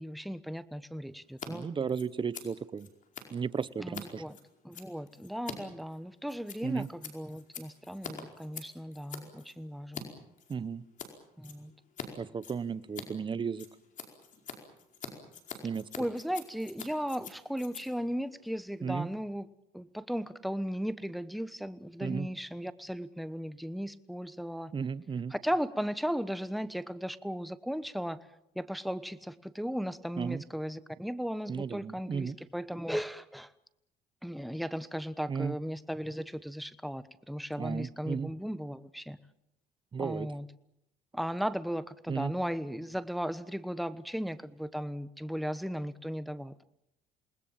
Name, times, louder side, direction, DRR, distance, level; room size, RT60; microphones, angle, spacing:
voice 1, 0.0-1.9 3.8-4.4 4.6-10.0 11.4-11.7 16.0-19.5 19.7-24.7 25.3-28.2 28.5-33.5 34.2-39.2 40.0-40.5 41.1-46.6, equal, ahead, 13 dB, 1.1 m, -36 dB
Scissors, 1.3-1.5 1.7-10.0 10.4-11.1 11.4-12.1 12.3-19.1, left 6 dB, 50° left, 4.8 m, -46 dB
voice 2, 1.5-2.9 3.3-4.2 6.6-6.9 10.5-10.8 12.1-13.7 15.6-15.9 18.8-19.1 22.0-22.3 24.7-25.3 30.2-30.4 31.5-32.4 35.3-35.5 37.6-38.3 39.9-40.3 42.1-42.3, right 6 dB, 30° right, 17 dB, 0.9 m, -34 dB
28.0 x 20.0 x 7.4 m, 0.82 s
cardioid pair, 110°, 17 cm